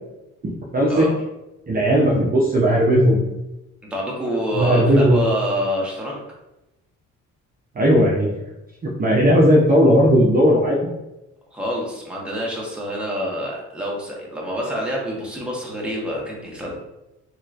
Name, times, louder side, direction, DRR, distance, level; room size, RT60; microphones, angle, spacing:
voice 1, 0.7-1.1 1.7-3.2 4.5-5.2 7.8-8.3 8.8-10.9, equal, 30° right, -4 dB, 0.6 m, -16 dB
voice 2, 3.8-6.2 11.5-16.7, equal, 5° right, -3 dB, 1.0 m, -26 dB
3.1 x 3.0 x 2.5 m, 0.95 s
cardioid pair, 90°, 30 cm